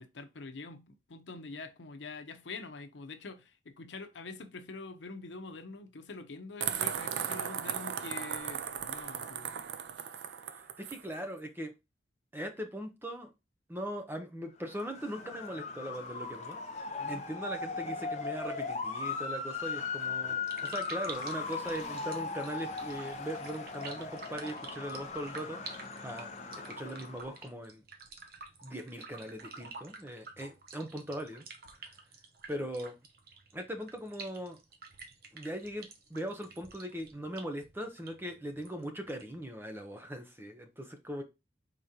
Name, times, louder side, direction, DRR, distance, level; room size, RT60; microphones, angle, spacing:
voice 1, 0.0-9.5 17.0-17.2, left 3 dB, 85° left, 0.7 m, -45 dB
sound 1, 6.6-11.0, right 8 dB, 75° right, 0.4 m, -36 dB
voice 2, 10.5-11.7 12.3-13.3 13.7-16.6 16.8-26.3 26.7-27.8 28.6-31.5 32.5-33.0 33.5-34.6 35.3-41.2, equal, 10° right, 0.6 m, -40 dB
Motor vehicle (road) / Siren, 14.7-27.4, left 4 dB, 40° left, 0.7 m, -38 dB
sound 2, 20.3-39.4, right 4 dB, 55° right, 0.8 m, -50 dB
5.1 x 3.6 x 2.8 m
head